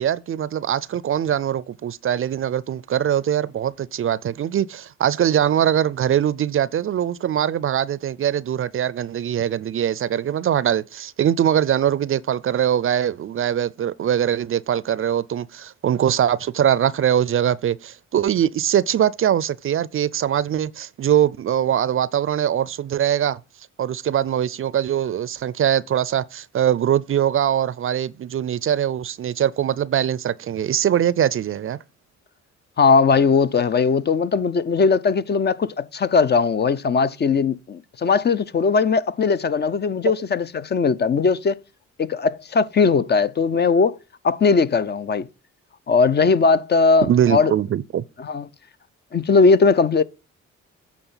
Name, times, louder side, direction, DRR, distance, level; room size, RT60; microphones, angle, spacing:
voice 1, 0.0-23.4 23.8-31.8 47.0-48.0, right 10 dB, 45° right, 0.5 m, -22 dB
voice 2, 32.8-41.6 42.0-44.0 44.2-45.3 45.9-47.5 48.2-48.5 49.1-50.0, left 4 dB, 35° left, 0.5 m, -19 dB
9.0 x 4.4 x 5.5 m
cardioid pair, 90°, 30 cm